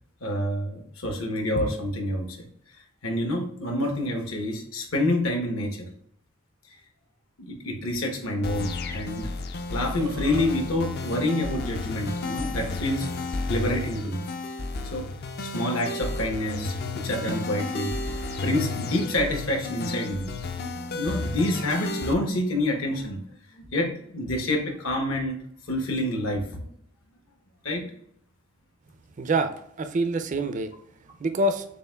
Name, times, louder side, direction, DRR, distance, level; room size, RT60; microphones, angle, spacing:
voice 1, 0.2-2.5 3.0-5.9 7.4-9.3 9.7-13.1 13.5-14.2 14.8-15.1 15.4-17.9 18.4-20.3 20.6-23.2 23.5-26.7 27.6-27.9, left 1 dB, 75° left, 3 dB, 1.0 m, -28 dB
sound 1, 8.4-22.1, left 2 dB, 50° left, 0.4 m, -32 dB
Burping eructation, 9.7-10.5, right 3 dB, 85° right, 0.6 m, -38 dB
voice 2, 29.2-30.7 31.2-31.7, right 2 dB, 35° right, 8 dB, 0.4 m, -26 dB
6.6 x 2.5 x 2.2 m, 0.70 s
head